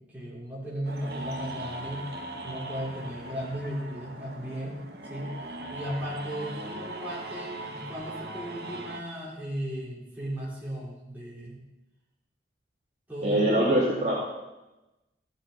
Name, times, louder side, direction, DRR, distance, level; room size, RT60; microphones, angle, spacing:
voice 1, 0.1-2.0 2.4-4.8 5.1-5.3 5.7-11.6 13.1-14.1, equal, 10° right, -7 dB, 4.4 m, -36 dB
sound 1, 0.8-9.0, right 2 dB, 65° right, 1.7 m, -39 dB
voice 2, 13.2-14.1, right 1 dB, 40° right, -6 dB, 2.6 m, -23 dB
14.5 x 8.1 x 5.8 m, 1.0 s
head